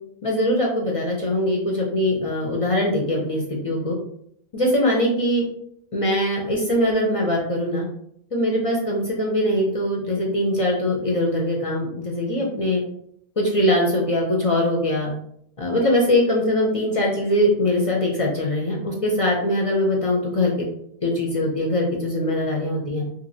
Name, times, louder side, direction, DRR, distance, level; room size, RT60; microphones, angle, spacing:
voice 1, 0.2-4.0 4.5-5.4 5.9-7.8 8.3-12.8 13.4-15.1 15.6-20.5 21.0-23.0, left 1 dB, 45° left, -1 dB, 0.5 m, -22 dB
2.9 x 2.5 x 2.6 m, 0.71 s
omnidirectional pair, 1.1 m